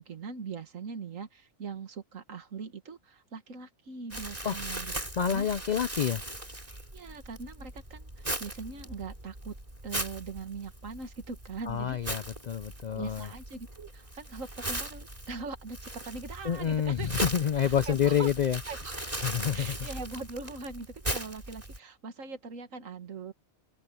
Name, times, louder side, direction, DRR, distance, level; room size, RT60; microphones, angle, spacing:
voice 1, 0.0-5.5 6.9-9.6 9.8-12.3 12.9-17.1 17.6-18.3 18.7-19.1 19.5-23.3, right 4 dB, 70° right, 2.1 m, -41 dB
Crumpling crinkling, 4.1-21.8, right 1 dB, 25° right, 4.7 m, -39 dB
voice 2, 5.2-6.2 11.7-13.3 16.4-18.6 19.2-19.8, left 8 dB, 65° left, 0.4 m, -28 dB
open air
omnidirectional pair, 1.4 m